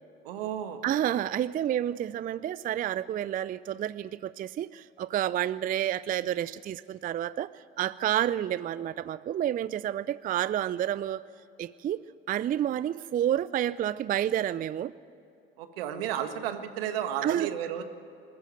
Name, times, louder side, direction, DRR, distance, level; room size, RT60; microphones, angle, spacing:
voice 1, 0.2-0.8 15.6-17.8, right 10 dB, 70° right, 9 dB, 1.6 m, -33 dB
voice 2, 0.8-11.2 11.6-12.0 12.3-14.9 17.2-17.5, right 11 dB, 30° right, 18 dB, 0.4 m, -29 dB
20.5 x 14.5 x 9.0 m, 2.7 s
hypercardioid pair, 65°, 30 cm